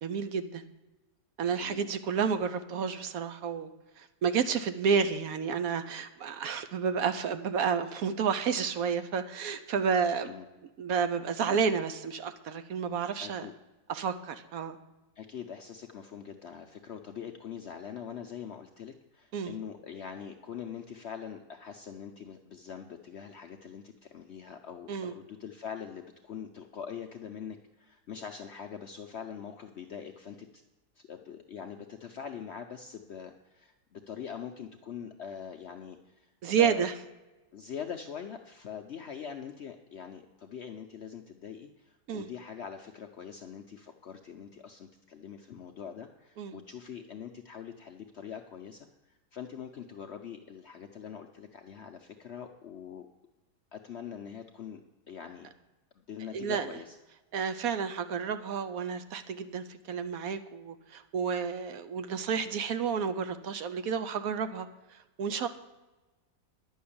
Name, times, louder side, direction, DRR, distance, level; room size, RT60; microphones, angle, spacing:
voice 1, 0.0-0.6 1.4-3.7 4.0-10.3 10.8-13.4 13.9-14.8 19.3-19.5 24.9-25.1 36.4-36.9 42.1-42.3 46.4-46.6 56.3-56.7 57.3-65.5, right 6 dB, 70° right, 9 dB, 1.0 m, -31 dB
voice 2, 13.2-13.5 15.2-30.6 31.0-36.3 36.6-36.9 37.5-53.1 53.7-54.8 55.1-55.5 56.1-57.0, left 7 dB, 60° left, 5 dB, 0.7 m, -43 dB
10.5 x 6.4 x 8.6 m, 1.1 s
omnidirectional pair, 1.7 m